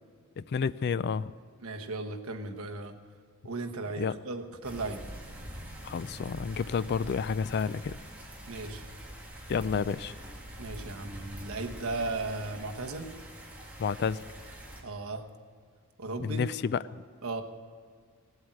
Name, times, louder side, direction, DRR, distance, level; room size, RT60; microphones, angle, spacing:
voice 1, 0.4-1.3 4.0-4.1 5.8-8.0 9.5-10.1 13.8-14.2 16.2-16.8, left 6 dB, 50° left, 17 dB, 0.4 m, -30 dB
voice 2, 1.6-2.9 3.4-5.0 8.5-8.8 10.6-13.1 14.8-15.2 16.0-16.4 17.2-17.4, right 2 dB, 70° right, 4 dB, 1.2 m, -36 dB
sound 1, 4.6-14.8, right 1 dB, 5° right, 2.2 m, -44 dB
17.0 x 8.0 x 9.0 m, 2.1 s
head